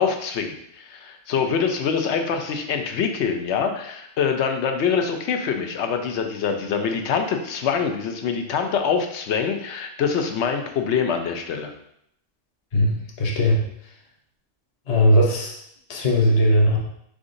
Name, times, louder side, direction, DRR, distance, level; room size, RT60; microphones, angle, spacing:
voice 1, 0.0-11.7, left 6 dB, 70° left, 5 dB, 0.9 m, -24 dB
voice 2, 12.7-13.6 14.9-15.6 15.9-16.8, equal, 35° left, -2 dB, 0.8 m, -18 dB
4.9 x 3.7 x 2.6 m, 0.72 s
omnidirectional pair, 1.2 m